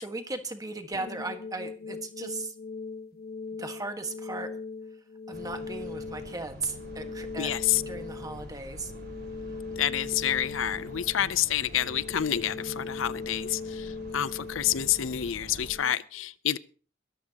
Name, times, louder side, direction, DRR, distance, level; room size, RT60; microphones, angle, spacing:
voice 1, 0.0-2.5 3.6-4.5 5.3-7.5 7.9-8.9, right 3 dB, 20° right, 1.5 m, -37 dB
sound 1, 0.9-15.9, left 4 dB, 50° left, 1.5 m, -40 dB
sound 2, 5.3-15.7, right 1 dB, 55° right, 4.3 m, -46 dB
voice 2, 7.4-7.8 9.8-16.6, left 10 dB, 75° left, 0.6 m, -28 dB
22.0 x 13.5 x 2.9 m
head